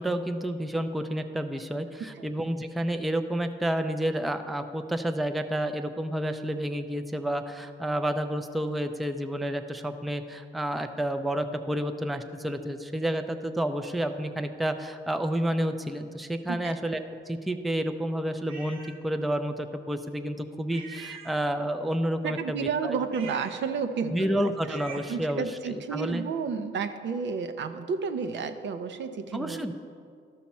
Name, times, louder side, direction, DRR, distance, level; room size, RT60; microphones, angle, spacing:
voice 1, 0.0-23.0 24.1-25.4 25.9-26.2 29.3-29.7, right 1 dB, ahead, 7 dB, 0.4 m, -30 dB
sound 1, 18.5-19.0 20.7-21.8 23.0-25.3, right 4 dB, 90° right, 1.0 m, -46 dB
voice 2, 22.2-24.8 25.1-29.7, right 5 dB, 65° right, 8 dB, 0.6 m, -32 dB
12.5 x 5.8 x 4.2 m, 2.3 s
cardioid pair, 90°, 20 cm